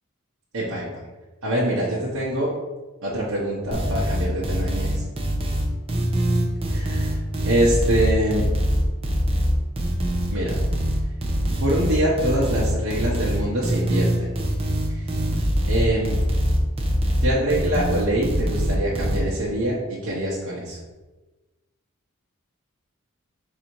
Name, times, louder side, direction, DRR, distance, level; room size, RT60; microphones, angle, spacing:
voice 1, 0.5-0.9 1.4-2.5 3.0-5.0 6.7-8.4 10.3-10.6 11.6-14.3 14.9-15.1 15.7-16.2 17.2-20.8, right 1 dB, 75° right, -7 dB, 0.9 m, -24 dB
sound 1, 3.7-19.2, equal, 25° right, 0.6 m, -23 dB
4.1 x 2.7 x 4.5 m, 1.2 s
head